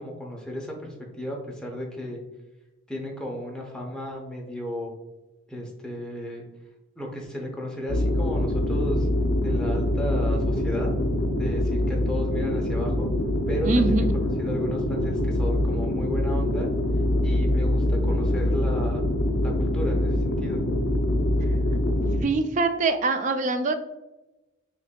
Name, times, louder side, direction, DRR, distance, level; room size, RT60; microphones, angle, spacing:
voice 1, 0.0-2.2 2.9-4.9 5.5-6.4 7.0-9.1 9.4-10.9 11.4-13.1 13.5-16.7 17.2-19.1 19.4-20.6, equal, 5° left, -1 dB, 0.7 m, -34 dB
sound 1, 7.9-22.2, left 1 dB, 60° left, 0.5 m, -24 dB
voice 2, 13.6-14.2 22.2-23.7, right 3 dB, 35° right, 7 dB, 0.3 m, -23 dB
6.1 x 2.6 x 2.2 m, 1.0 s
head